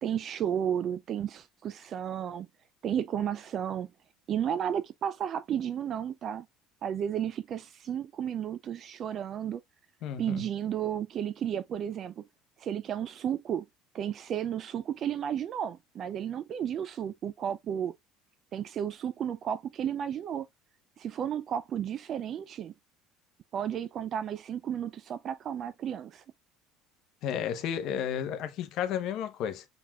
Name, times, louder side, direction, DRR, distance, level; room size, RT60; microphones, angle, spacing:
voice 1, 0.0-2.5 2.8-3.9 4.3-6.5 6.8-9.6 10.2-12.2 12.6-13.7 13.9-17.9 18.5-20.5 21.0-22.7 23.5-26.2, right 9 dB, 35° right, 0.3 m, -33 dB
voice 2, 10.0-10.4 27.2-29.6, left 9 dB, 50° left, 0.9 m, -32 dB
5.8 x 4.0 x 2.3 m
cardioid pair, 165°, 0 cm